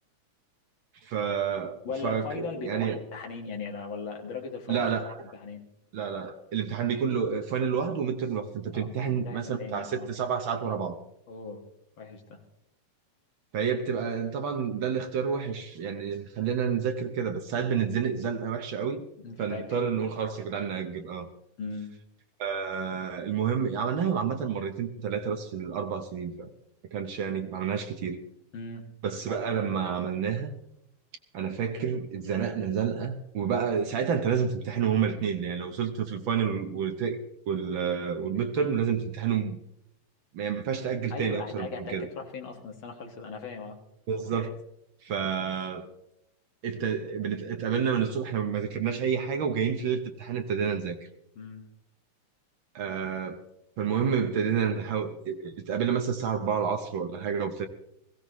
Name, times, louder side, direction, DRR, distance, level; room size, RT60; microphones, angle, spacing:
voice 1, 1.0-3.0 4.7-5.1 5.9-11.0 13.5-19.0 19.4-21.3 22.4-26.5 26.9-28.2 29.0-30.5 31.3-37.2 37.5-39.6 40.3-42.1 44.1-44.5 45.0-45.9 46.6-51.0 52.7-53.4 53.8-57.7, right 7 dB, 65° right, 1.3 m, -29 dB
voice 2, 1.8-4.9 5.3-5.6 8.7-10.1 11.3-11.6 12.0-12.4 19.2-19.7 21.6-21.9 28.5-28.9 41.1-43.8 51.4-51.6, left 4 dB, 45° left, 2.3 m, -38 dB
21.0 x 15.5 x 3.1 m
omnidirectional pair, 3.4 m